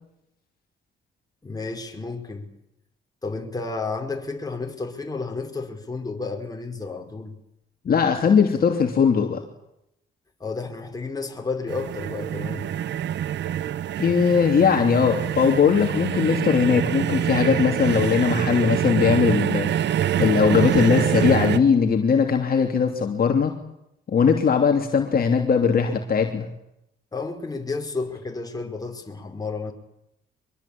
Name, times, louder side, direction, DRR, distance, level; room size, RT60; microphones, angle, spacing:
voice 1, 1.4-2.5 3.2-7.4 10.4-12.7 27.1-29.7, left 3 dB, 20° left, 5.1 m, -31 dB
voice 2, 7.8-9.4 14.0-19.8 20.2-23.5 24.1-26.5, left 6 dB, 50° left, 2.9 m, -20 dB
sound 1, 11.7-21.6, right 10 dB, 65° right, 0.9 m, -25 dB
24.0 x 22.0 x 8.7 m
cardioid pair, 90°, 20 cm